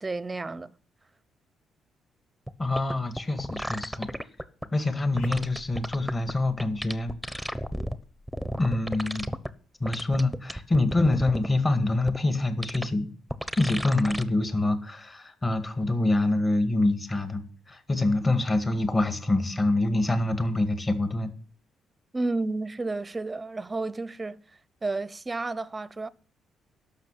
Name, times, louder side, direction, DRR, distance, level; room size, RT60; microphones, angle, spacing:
voice 1, 0.0-0.8 22.1-24.4 24.8-26.1, right 3 dB, 20° right, 0.7 m, -31 dB
sound 1, 2.5-2.6 2.8-4.7 5.2-6.3 6.6-7.9 8.3-9.5 9.8-11.5 12.1-12.2 12.6-12.9 13.3-14.2 14.6-14.7, equal, ahead, 1.0 m, -33 dB
voice 2, 2.6-4.1 4.7-7.6 8.6-9.3 9.8-13.1 13.6-21.3, left 2 dB, 25° left, 1.9 m, -26 dB
sound 2, 9.8-9.9, left 1 dB, 85° left, 2.9 m, -51 dB
12.0 x 6.6 x 8.9 m
cardioid pair, 90°, 0 cm